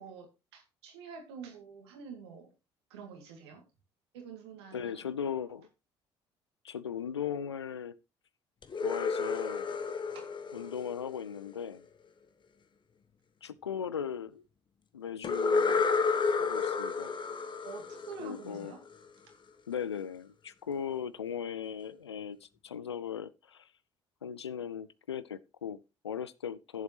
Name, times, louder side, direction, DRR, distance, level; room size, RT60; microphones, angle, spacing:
voice 1, 0.0-2.5 2.9-3.6 4.1-5.1 10.1-10.3 17.6-18.8, right 6 dB, 75° right, 2.4 m, -47 dB
voice 2, 4.7-5.7 6.6-8.0 8.8-9.7 10.5-11.8 13.4-14.4 14.9-15.9 16.4-17.1 18.2-18.7 19.7-23.7 24.2-26.8, left 8 dB, 90° left, 0.5 m, -38 dB
sound 1, 8.6-11.6 15.2-19.0, left 4 dB, 35° left, 1.1 m, -31 dB
15.0 x 7.4 x 3.0 m
figure-of-eight pair, 50°, 14 cm